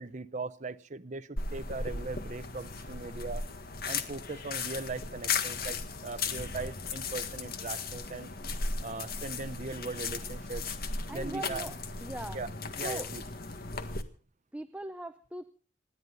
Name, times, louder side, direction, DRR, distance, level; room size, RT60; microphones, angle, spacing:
voice 1, 0.0-3.5 3.9-8.3 8.8-10.6 11.1-11.7 12.3-12.5 12.8-13.2, right 3 dB, 40° right, 10 dB, 0.7 m, -39 dB
sound 1, 1.4-14.0, left 4 dB, 55° left, 1.7 m, -36 dB
voice 2, 11.1-12.4 12.8-13.1 14.5-15.5, right 1 dB, 5° right, 9 dB, 0.7 m, -40 dB
27.5 x 11.0 x 3.9 m, 0.41 s
head